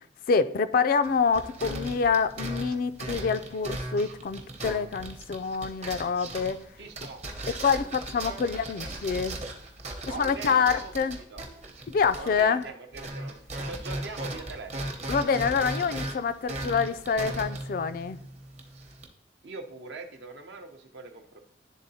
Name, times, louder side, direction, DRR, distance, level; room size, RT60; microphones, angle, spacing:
voice 1, 0.3-6.6 7.5-9.4 10.2-11.2 11.9-12.7 15.1-18.2, left 5 dB, 50° left, 0.3 m, -26 dB
sound 1, 1.0-12.7 12.9-19.1, right 1 dB, 40° right, 0.8 m, -37 dB
voice 2, 6.8-7.2 10.1-11.4 12.2-13.3 13.6-14.9 19.4-21.4, right 3 dB, 65° right, 0.7 m, -42 dB
11.0 x 3.7 x 2.7 m
head